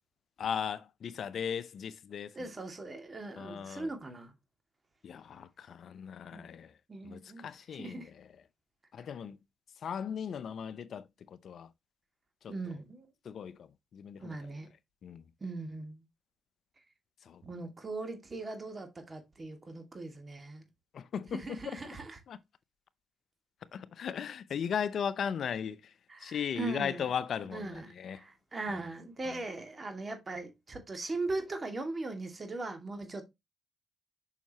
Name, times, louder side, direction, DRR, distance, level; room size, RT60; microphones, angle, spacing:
voice 1, 0.4-2.3 3.4-3.9 5.0-6.7 7.0-8.0 8.9-9.4 9.8-11.0 11.4-11.7 12.4-12.5 13.3-13.6 13.9-14.4 15.0-15.2 17.3-17.4 20.9-21.8 22.3-22.4 23.7-25.8 26.2-28.2, left 7 dB, 60° left, 0.6 m, -37 dB
voice 2, 2.3-4.3 6.3-6.4 6.9-7.4 7.7-8.1 12.5-13.1 14.2-14.7 15.4-16.0 17.4-20.6 21.3-22.2 26.1-27.1 27.5-33.2, right 3 dB, 35° right, 2.3 m, -39 dB
7.1 x 5.8 x 3.0 m
supercardioid pair, 55°, 0 cm